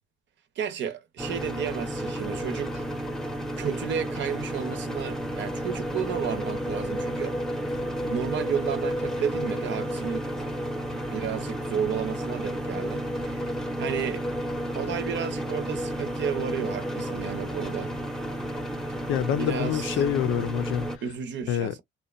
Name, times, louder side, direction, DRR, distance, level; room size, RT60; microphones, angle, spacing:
voice 1, 0.6-2.8 3.6-7.4 8.0-10.3 10.9-13.5 13.8-14.3 14.7-17.9 19.4-20.0 21.0-21.8, right 7 dB, 65° right, 0.7 m, -32 dB
sound 1, 1.2-21.0, equal, ahead, 0.7 m, -32 dB
voice 2, 19.1-20.9 21.5-21.7, left 10 dB, 85° left, 0.5 m, -26 dB
2.8 x 2.2 x 2.4 m
cardioid pair, 90°, 20 cm